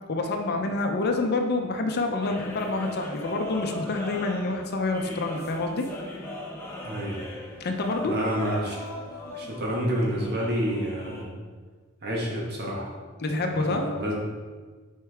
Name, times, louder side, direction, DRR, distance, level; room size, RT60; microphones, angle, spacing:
voice 1, 0.1-5.9 7.6-8.1 13.2-13.9, left 2 dB, 50° left, 4 dB, 0.7 m, -27 dB
sound 1, 2.2-11.2, left 1 dB, 10° left, 0.9 m, -39 dB
voice 2, 6.8-7.2 8.0-8.8 9.4-11.3 12.0-12.9 13.6-14.1, equal, 50° right, -2 dB, 1.5 m, -29 dB
7.4 x 4.8 x 3.5 m, 1.5 s
head